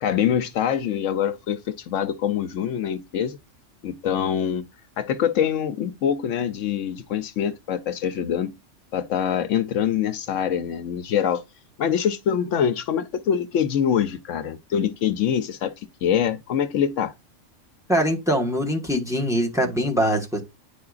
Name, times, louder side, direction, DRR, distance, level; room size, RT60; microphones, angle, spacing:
voice 1, 0.0-3.4 3.8-4.6 5.0-8.5 8.9-11.4 11.8-17.1, left 8 dB, 75° left, 0.9 m, -24 dB
voice 2, 17.9-20.4, equal, 5° right, 1.1 m, -23 dB
9.8 x 4.7 x 2.4 m
omnidirectional pair, 1.4 m